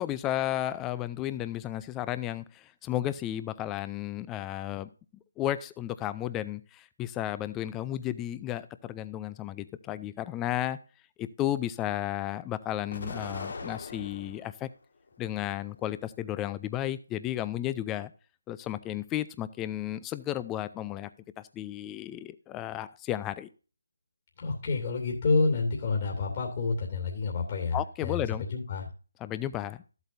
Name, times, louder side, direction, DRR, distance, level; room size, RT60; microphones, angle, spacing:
voice 1, 0.0-4.9 5.4-10.8 11.2-14.7 15.2-18.1 18.5-21.1 21.4-23.5 27.7-28.4 29.2-29.8, left 13 dB, 10° left, 15 dB, 0.5 m, -33 dB
Explosion, 12.9-14.6 15.1-16.0, left 3 dB, 55° left, 1.8 m, -40 dB
voice 2, 24.4-28.9, left 4 dB, 35° left, 0 dB, 2.6 m, -29 dB
13.5 x 8.1 x 2.6 m, 0.35 s
figure-of-eight pair, 155°, 0 cm